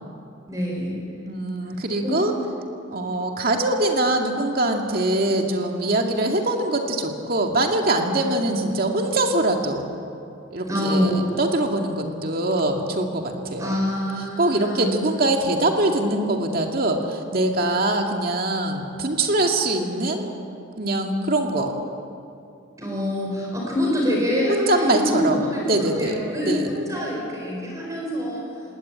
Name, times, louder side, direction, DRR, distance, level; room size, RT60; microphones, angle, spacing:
voice 1, 0.5-1.0 2.0-2.2 10.7-11.3 13.6-14.9 22.8-28.4, left 1 dB, 15° right, -3 dB, 4.9 m, -25 dB
voice 2, 1.3-2.3 2.9-9.9 10.5-13.7 14.4-20.3 20.8-21.7 24.5-25.4 25.7-26.2 26.4-26.7, right 2 dB, 50° right, 2 dB, 2.3 m, -23 dB
19.5 x 19.0 x 8.8 m, 2.6 s
head